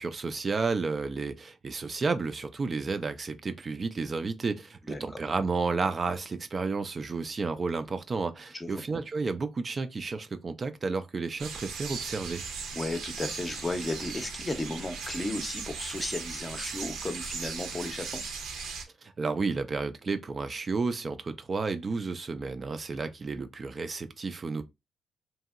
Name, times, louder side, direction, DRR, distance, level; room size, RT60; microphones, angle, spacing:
voice 1, 0.0-12.4 19.0-24.6, right 4 dB, 35° right, 0.3 m, -32 dB
voice 2, 4.9-5.2 8.5-8.8 12.7-18.2, left 2 dB, 20° left, 0.6 m, -34 dB
sound 1, 11.4-18.8, right 5 dB, 80° right, 0.7 m, -38 dB
2.9 x 2.6 x 2.4 m
cardioid pair, 90°, 0 cm